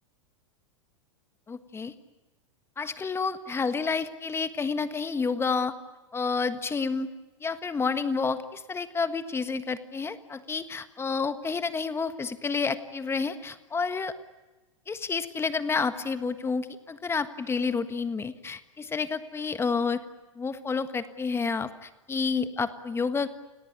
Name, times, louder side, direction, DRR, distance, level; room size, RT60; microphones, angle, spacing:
voice 1, 1.5-1.9 2.8-5.7 6.1-7.1 7.4-14.1 14.9-20.0 20.3-23.3, left 5 dB, 15° left, 11 dB, 1.5 m, -29 dB
30.0 x 18.0 x 9.5 m, 1.1 s
hypercardioid pair, 100°, 16 cm